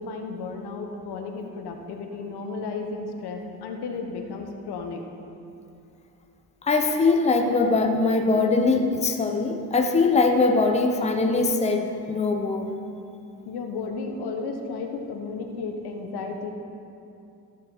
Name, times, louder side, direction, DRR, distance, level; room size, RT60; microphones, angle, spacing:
voice 1, 0.0-5.0 13.5-16.5, left 4 dB, 75° left, 3 dB, 1.3 m, -33 dB
voice 2, 6.6-12.7, left 3 dB, 15° left, 3 dB, 0.8 m, -22 dB
14.5 x 6.8 x 5.0 m, 2.7 s
cardioid pair, 115°, 39 cm